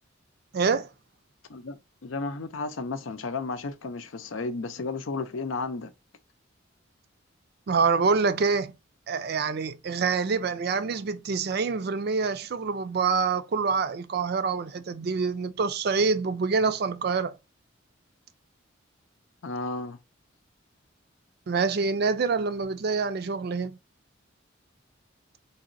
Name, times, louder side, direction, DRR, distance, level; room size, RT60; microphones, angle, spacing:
voice 1, 0.5-0.9 7.7-8.7 9.1-17.4 21.5-23.8, right 4 dB, 50° right, 0.4 m, -26 dB
voice 2, 1.5-5.9 19.4-20.0, left 3 dB, 75° left, 0.5 m, -33 dB
4.0 x 3.0 x 2.6 m
head